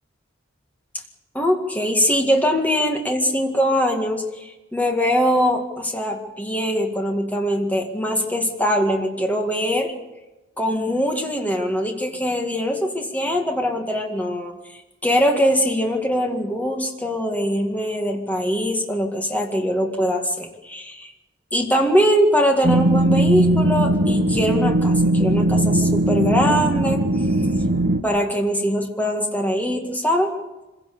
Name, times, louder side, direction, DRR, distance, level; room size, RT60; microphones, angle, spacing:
voice 1, 1.3-9.9 10.6-14.5 15.0-21.1 21.5-27.0 28.0-30.3, equal, 10° left, 2 dB, 2.0 m, -22 dB
sound 1, 22.6-28.0, right 1 dB, 60° right, 1.2 m, -19 dB
25.0 x 16.5 x 6.9 m, 1.1 s
head